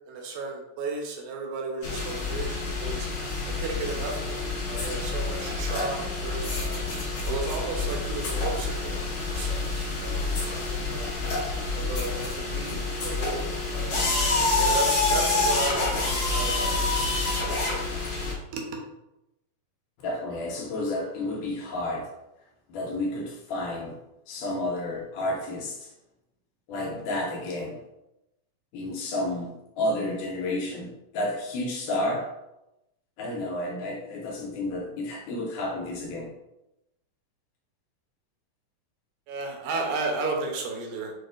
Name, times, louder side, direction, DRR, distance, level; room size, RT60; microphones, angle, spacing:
voice 1, 0.1-3.1 3.5-6.8 7.2-9.0 9.3-11.1 11.7-12.8 13.0-14.0 14.6-17.1 18.5-18.8 39.3-41.1, right 3 dB, 75° right, 1 dB, 1.9 m, -34 dB
sound 1, 1.8-18.3, left 3 dB, 60° left, 1.8 m, -28 dB
voice 2, 20.0-22.1 22.7-23.9 24.3-25.9 26.7-27.8 28.7-32.3 33.2-36.3, left 1 dB, 80° left, -1 dB, 2.1 m, -31 dB
6.0 x 2.4 x 2.4 m, 0.90 s
omnidirectional pair, 3.8 m